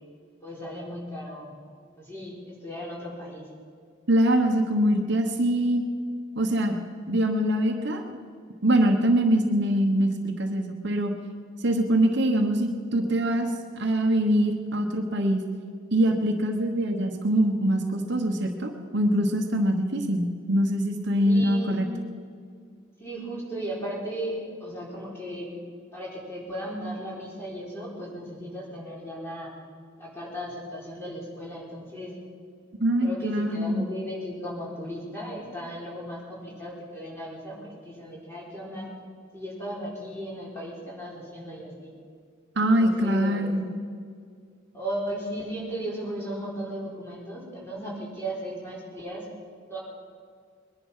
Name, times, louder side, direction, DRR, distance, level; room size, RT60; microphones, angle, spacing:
voice 1, 0.4-1.6 2.0-3.5 21.2-21.8 23.0-25.5 25.9-29.5 30.0-32.1 33.0-38.9 39.3-41.9 42.6-43.5 44.7-49.3 49.7-49.8, equal, 10° left, -5 dB, 4.3 m, -36 dB
voice 2, 4.1-5.8 6.4-6.8 7.1-8.2 8.6-11.1 11.6-15.4 15.9-21.9 32.8-33.9 42.5-43.7, right 1 dB, 55° right, 3 dB, 1.2 m, -23 dB
21.5 x 11.0 x 5.7 m, 2.1 s
head